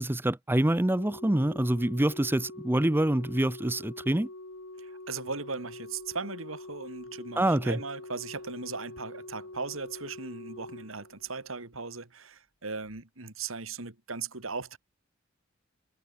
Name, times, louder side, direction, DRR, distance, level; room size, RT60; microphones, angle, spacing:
voice 1, 0.0-4.3 7.4-7.8, right 1 dB, 10° right, 0.7 m, -26 dB
Organ, 0.8-11.7 12.8-13.0, left 2 dB, 75° left, 3.2 m, -45 dB
voice 2, 4.8-14.8, right 4 dB, 85° right, 2.9 m, -38 dB
head